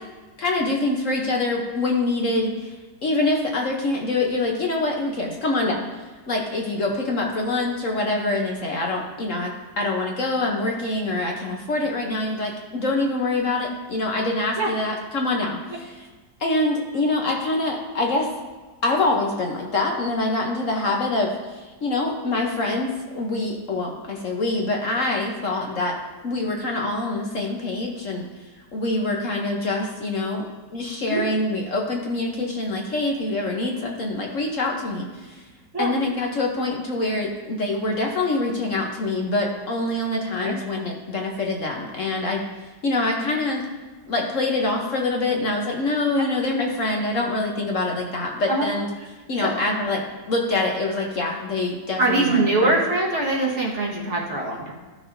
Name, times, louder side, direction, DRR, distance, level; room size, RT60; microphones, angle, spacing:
voice 1, 0.4-2.7 3.0-16.1 16.4-18.3 18.8-26.0 26.2-28.2 28.7-30.4 30.7-35.4 35.8-42.4 42.8-43.6 44.1-48.9 49.3-50.0 50.3-52.7, left 2 dB, 55° left, 0 dB, 1.2 m, -25 dB
voice 2, 52.0-54.7, right 2 dB, 45° right, -3 dB, 1.6 m, -22 dB
14.0 x 6.2 x 2.7 m, 1.3 s
omnidirectional pair, 1.8 m